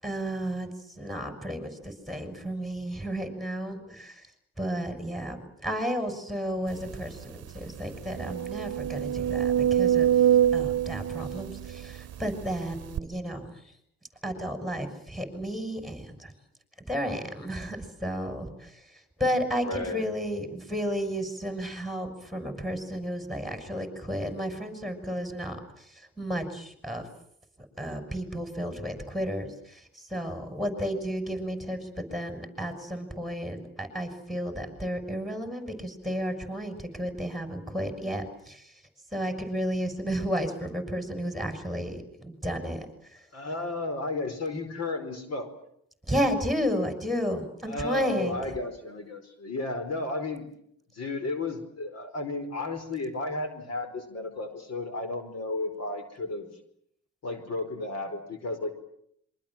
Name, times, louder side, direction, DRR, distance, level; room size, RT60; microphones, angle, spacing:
voice 1, 0.0-0.7 1.0-4.2 4.6-5.4 5.6-10.1 10.5-13.5 14.2-16.3 16.9-18.7 19.2-25.8 26.2-27.0 27.8-38.7 39.1-42.9 46.0-48.4, equal, ahead, 8 dB, 6.4 m, -32 dB
sound 1, 6.9-7.0 7.4-7.5 8.1-12.3 13.0-13.1, right 10 dB, 55° right, 1.0 m, -25 dB
voice 2, 19.6-20.0 43.3-45.5 47.7-50.5 50.9-56.5 57.2-58.7, left 2 dB, 55° left, 8 dB, 4.9 m, -33 dB
27.0 x 24.0 x 7.5 m, 0.71 s
cardioid pair, 90°, 30 cm